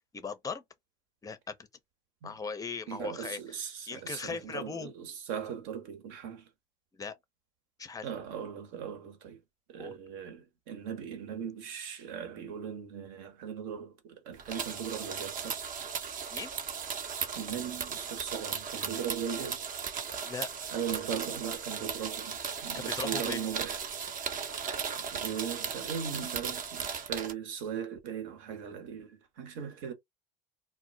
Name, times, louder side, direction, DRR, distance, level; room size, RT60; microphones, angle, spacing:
voice 1, 0.1-0.6 1.2-1.5 2.2-3.4 3.9-4.9 6.9-7.2 7.8-8.1 9.8-9.9 16.3-16.5 20.2-20.5 22.7-23.4, left 5 dB, 15° left, 0.5 m, -38 dB
voice 2, 2.9-6.5 8.0-9.4 9.7-15.6 17.4-19.6 20.7-23.8 25.0-29.9, right 8 dB, 65° right, 1.0 m, -39 dB
sound 1, 14.4-27.3, right 6 dB, 40° right, 0.7 m, -36 dB
2.2 x 2.0 x 3.8 m
hypercardioid pair, 80°, 21 cm